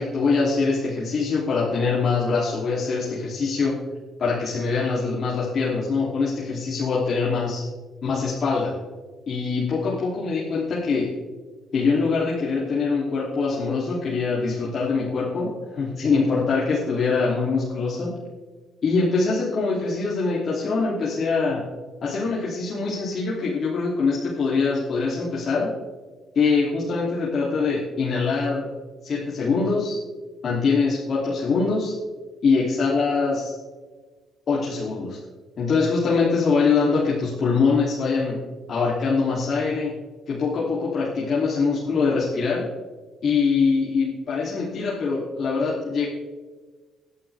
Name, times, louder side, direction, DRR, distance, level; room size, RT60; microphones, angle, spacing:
voice 1, 0.0-3.8 4.2-7.6 8.0-8.7 9.3-11.1 11.7-18.2 18.8-21.6 22.0-25.7 26.3-28.7 29.0-30.0 30.4-31.9 32.4-33.6 34.5-35.2 35.6-38.4 38.7-39.9 40.3-42.6 43.2-46.1, left 4 dB, 55° left, -6 dB, 3.0 m, -23 dB
19.0 x 11.0 x 3.5 m, 1.4 s
cardioid pair, 90°, 0 cm